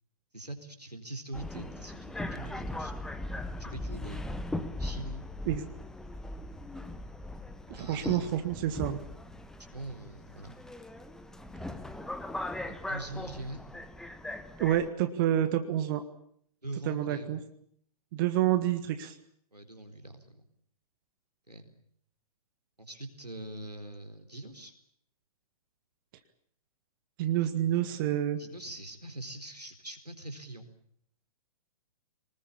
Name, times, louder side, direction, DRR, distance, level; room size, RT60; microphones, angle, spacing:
voice 1, 0.3-2.9 3.6-4.3 4.8-5.3 7.7-8.3 9.7-10.5 12.7-13.7 16.6-17.4 19.5-20.4 21.5-21.7 22.8-24.7 27.4-27.7 28.4-30.7, right 2 dB, 90° right, 5 dB, 4.2 m, -43 dB
Subway metro underground, 1.3-14.9, left 1 dB, 5° left, 1.2 m, -39 dB
voice 2, 7.7-9.0 14.6-16.0 16.8-17.4 18.1-19.1 27.2-28.4, right 12 dB, 35° right, 9 dB, 1.6 m, -28 dB
24.0 x 20.0 x 8.6 m, 0.66 s
figure-of-eight pair, 120°, 20 cm